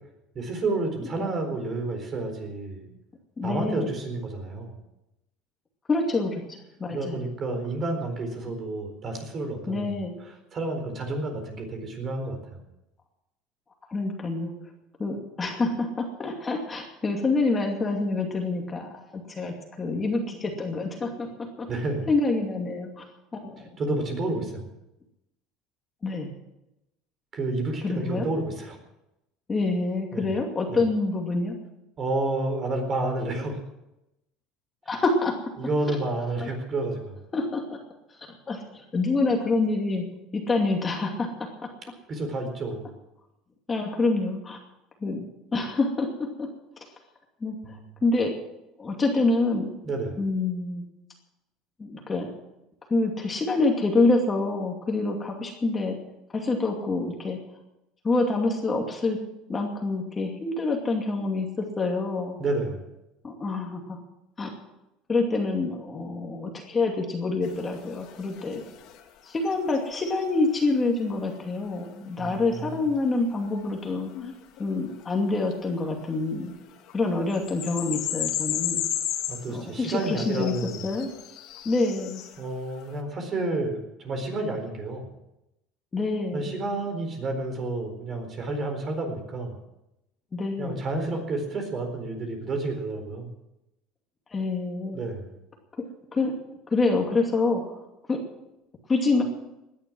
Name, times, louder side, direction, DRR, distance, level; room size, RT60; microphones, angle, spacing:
voice 1, 0.3-2.9 3.4-4.8 6.9-12.6 21.7-22.1 23.8-24.7 27.3-28.8 30.1-30.3 30.7-30.8 32.0-33.6 35.6-37.2 42.1-42.9 47.6-48.0 49.8-50.2 62.4-62.9 72.2-72.9 79.3-80.9 82.4-85.1 86.3-89.6 90.6-93.3 94.9-95.3, right 2 dB, 30° right, 5 dB, 4.3 m, -30 dB
voice 2, 3.4-3.9 5.9-7.3 9.7-10.1 13.9-14.5 15.0-21.3 21.6-21.7 22.1-23.0 23.3-23.6 26.0-26.3 27.8-28.3 29.5-31.6 34.9-35.3 35.9-36.0 36.4-36.5 37.3-37.8 38.5-40.0 40.3-41.3 43.7-44.6 45.0-45.3 45.5-46.5 47.4-48.3 48.8-49.8 50.2-50.8 51.8-52.3 52.9-56.0 56.3-57.4 58.0-59.2 59.5-62.4 63.2-64.0 64.4-64.5 65.1-68.6 69.2-74.3 74.6-76.5 76.9-78.8 79.5-80.5 80.8-81.1 81.6-82.2 85.9-86.5 90.3-90.8 94.3-95.0 95.8-95.9 96.1-96.3 96.7-97.7 98.1-98.2 98.9-99.2, left 3 dB, 20° left, 1 dB, 2.5 m, -26 dB
sound 1, 67.4-69.0 69.4-70.2 73.8-75.5 76.3-76.5 76.9-77.0 77.3-82.4, left 11 dB, 55° left, 2.2 m, -34 dB
18.5 x 11.0 x 6.2 m, 0.89 s
cardioid pair, 140°, 0 cm